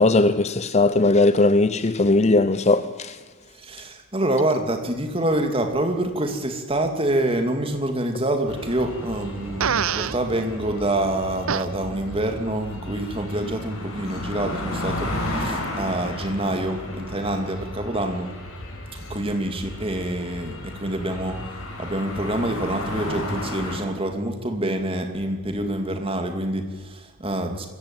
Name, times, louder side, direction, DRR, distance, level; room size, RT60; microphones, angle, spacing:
voice 1, 0.0-3.2, left 2 dB, 30° left, 0.6 m, -18 dB
voice 2, 3.5-18.3 18.9-21.5 21.8-27.7, right 1 dB, 25° right, 2.7 m, -26 dB
sound 1, 8.5-23.8, left 1 dB, 85° left, 6.0 m, -33 dB
Fart, 9.6-10.2 11.5-11.7, right 7 dB, 70° right, 0.6 m, -23 dB
24.5 x 15.0 x 9.2 m
head